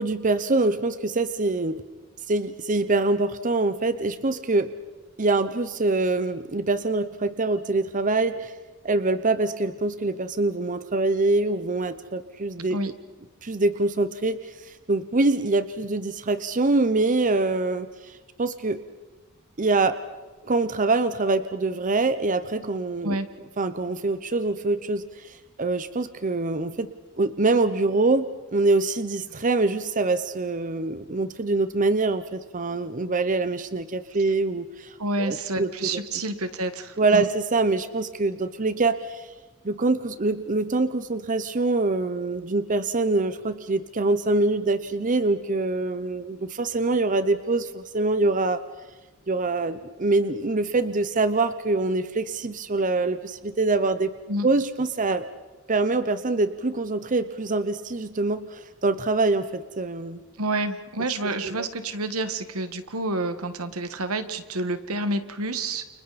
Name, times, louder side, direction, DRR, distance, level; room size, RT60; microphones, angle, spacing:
voice 1, 0.0-1.8 2.3-4.7 5.2-8.5 8.8-12.8 13.4-14.4 14.6-18.8 19.6-20.0 20.4-23.2 23.6-26.9 27.2-36.0 37.0-39.3 39.6-48.6 49.3-54.1 54.4-55.3 55.7-60.2 61.4-61.6, right 3 dB, 35° right, 11 dB, 0.8 m, -24 dB
voice 2, 35.0-37.3 54.3-54.5 60.4-65.9, right 2 dB, 85° right, 10 dB, 1.7 m, -29 dB
29.5 x 29.5 x 4.2 m, 1.2 s
head